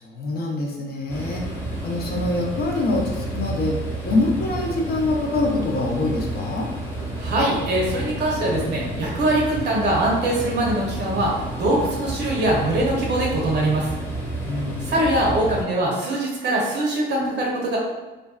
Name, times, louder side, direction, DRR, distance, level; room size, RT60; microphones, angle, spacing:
voice 1, 0.0-1.4 1.8-6.7 14.4-14.9, left 2 dB, 50° left, -1 dB, 0.6 m, -25 dB
sound 1, 1.1-15.6, right 1 dB, 10° left, 0.7 m, -30 dB
voice 2, 7.2-13.9 14.8-17.8, right 1 dB, 60° right, -3 dB, 0.8 m, -22 dB
2.5 x 2.2 x 2.3 m, 1.2 s
cardioid pair, 90°, 20 cm